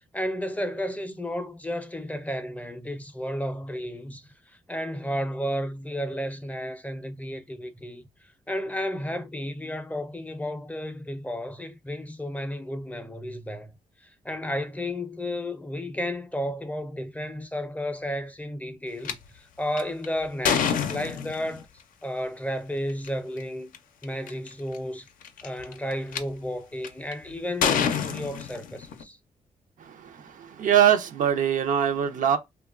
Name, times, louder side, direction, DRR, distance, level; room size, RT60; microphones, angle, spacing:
voice 1, 0.1-8.0 8.5-13.7 14.0-21.7 22.0-23.7 24.0-25.1 25.4-29.2, equal, 10° left, 0.4 m, -32 dB
sound 1, 19.0-19.1 19.8-21.6 22.9-23.1 23.7-23.8 24.0-24.5 25.2-26.2 26.8-27.1 27.6-29.0, left 7 dB, 85° left, 0.4 m, -27 dB
voice 2, 29.8-32.4, right 9 dB, 75° right, 0.5 m, -23 dB
2.9 x 2.2 x 2.3 m
cardioid pair, 85°, 14 cm